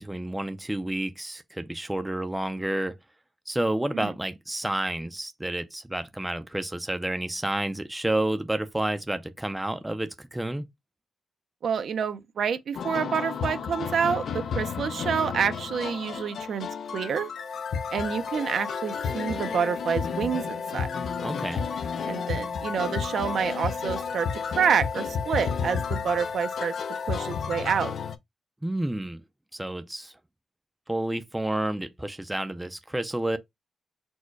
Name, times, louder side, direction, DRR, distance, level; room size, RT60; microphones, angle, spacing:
voice 1, 0.0-3.0 3.5-10.7 21.2-21.7 28.6-29.2 29.5-30.1 30.9-33.4, right 1 dB, 10° right, 0.4 m, -30 dB
voice 2, 11.6-16.7 16.9-17.3 17.9-20.9 22.0-24.3 24.6-26.7 27.1-27.9, right 7 dB, 65° right, 0.5 m, -28 dB
sound 1, 12.7-28.2, left 6 dB, 65° left, 0.5 m, -31 dB
4.3 x 2.2 x 4.5 m
wide cardioid pair, 140°, 0 cm